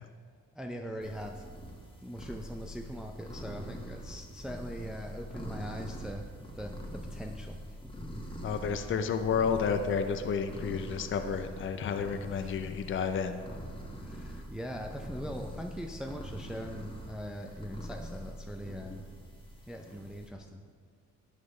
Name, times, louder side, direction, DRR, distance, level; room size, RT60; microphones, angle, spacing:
voice 1, 0.6-1.5 2.0-6.3 6.6-7.6 12.3-12.7 14.0-19.0 19.7-20.6, equal, ahead, 3 dB, 0.5 m, -41 dB
sound 1, 1.0-20.3, equal, 15° left, 1.5 m, -44 dB
voice 2, 8.4-13.4, left 6 dB, 40° left, 8 dB, 0.6 m, -31 dB
11.5 x 6.7 x 3.2 m, 2.1 s
cardioid pair, 90°, 30 cm